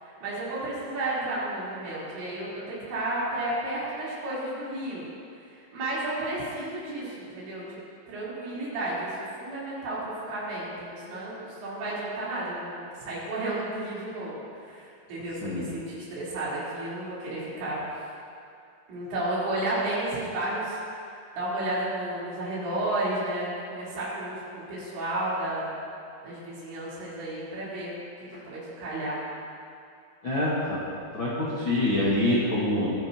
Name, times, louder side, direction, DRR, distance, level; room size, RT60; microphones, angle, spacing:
voice 1, 0.0-5.1 5.6-7.8 8.1-17.8 18.9-20.8 21.3-25.7 26.2-27.9 28.3-29.2, right 1 dB, 75° right, -9 dB, 5.9 m, -32 dB
voice 2, 15.4-15.7 30.2-30.8 31.1-32.9, left 1 dB, 60° left, -8 dB, 1.2 m, -25 dB
22.5 x 10.5 x 2.9 m, 2.5 s
omnidirectional pair, 5.2 m